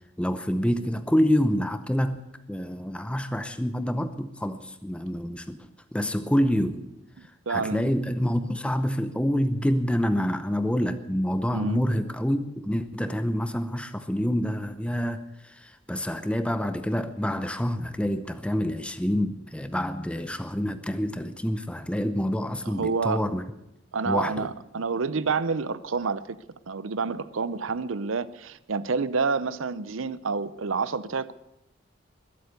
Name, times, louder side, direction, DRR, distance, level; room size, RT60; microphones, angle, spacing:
voice 1, 0.2-5.6 5.9-6.8 7.5-23.4 24.1-24.5, equal, 5° left, 10 dB, 0.7 m, -27 dB
voice 2, 7.5-7.9 11.5-11.8 22.6-23.2 23.9-26.2 26.7-31.3, right 4 dB, 90° right, 16 dB, 0.7 m, -28 dB
21.5 x 8.1 x 8.2 m, 0.86 s
head